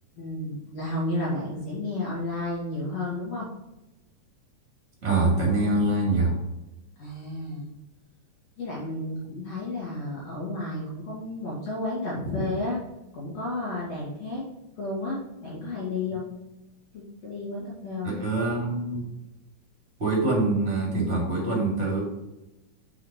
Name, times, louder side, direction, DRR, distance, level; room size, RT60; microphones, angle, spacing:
voice 1, 0.2-3.5 7.0-7.7 8.6-12.8 13.1-14.4 14.8-16.3 16.9-18.1, left 2 dB, 55° left, -6 dB, 2.8 m, -32 dB
voice 2, 5.0-6.4 18.0-19.1 20.0-22.0, right 2 dB, 20° right, -3 dB, 2.5 m, -24 dB
6.2 x 5.8 x 5.0 m, 0.97 s
omnidirectional pair, 3.8 m